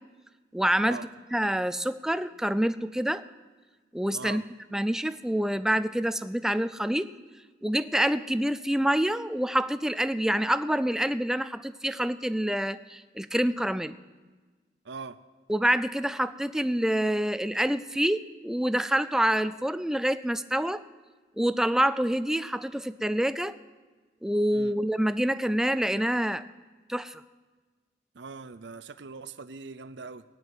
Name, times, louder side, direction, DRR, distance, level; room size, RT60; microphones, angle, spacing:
voice 1, 0.5-1.0 1.3-3.2 3.9-4.4 4.7-7.1 7.6-14.0 15.5-20.8 21.4-23.6 24.2-26.4 26.9-27.2, right 1 dB, 5° right, 13 dB, 0.3 m, -27 dB
voice 2, 14.8-15.2 24.5-24.8 28.1-30.2, right 4 dB, 75° right, 13 dB, 0.6 m, -41 dB
17.5 x 6.3 x 9.1 m, 1.3 s
head